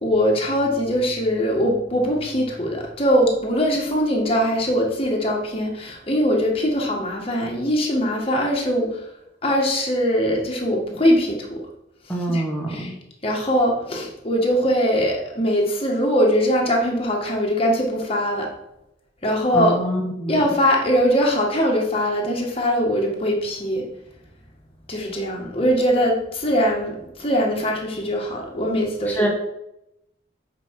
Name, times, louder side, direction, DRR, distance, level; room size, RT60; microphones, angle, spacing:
voice 1, 0.0-9.0 9.4-11.6 12.3-12.4 12.7-12.9 13.2-18.5 19.2-19.8 20.3-23.9 24.9-29.3, equal, 30° left, 0 dB, 1.7 m, -21 dB
voice 2, 12.1-13.0 19.5-20.5 29.2-29.3, right 1 dB, 10° left, -1 dB, 1.7 m, -25 dB
8.0 x 5.2 x 4.7 m, 0.83 s
head